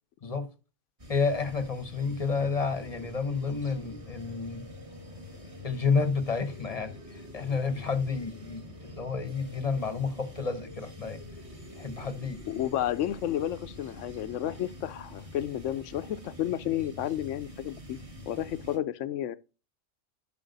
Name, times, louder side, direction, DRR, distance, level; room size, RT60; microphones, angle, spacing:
sound 1, 1.0-18.8, left 1 dB, 25° right, 1.6 m, -46 dB
voice 1, 1.1-4.7 5.6-11.2 11.8-12.4, left 4 dB, 35° left, 0.9 m, -30 dB
sound 2, 2.2-15.0, left 1 dB, 65° right, 2.7 m, -53 dB
voice 2, 12.5-18.0 18.3-19.4, left 12 dB, 75° left, 0.9 m, -31 dB
10.5 x 5.8 x 4.0 m
omnidirectional pair, 1.3 m